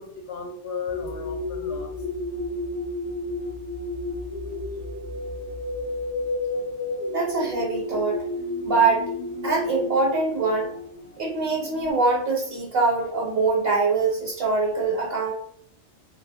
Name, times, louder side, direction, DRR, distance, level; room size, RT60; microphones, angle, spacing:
voice 1, 0.0-2.0, left 5 dB, 75° left, 0.8 m, -35 dB
sound 1, 0.9-11.9, left 2 dB, 45° left, 0.5 m, -31 dB
voice 2, 7.1-8.2 8.6-9.1 9.4-10.7 11.2-15.3, right 4 dB, 60° right, 0.9 m, -23 dB
2.2 x 2.0 x 2.7 m
omnidirectional pair, 1.2 m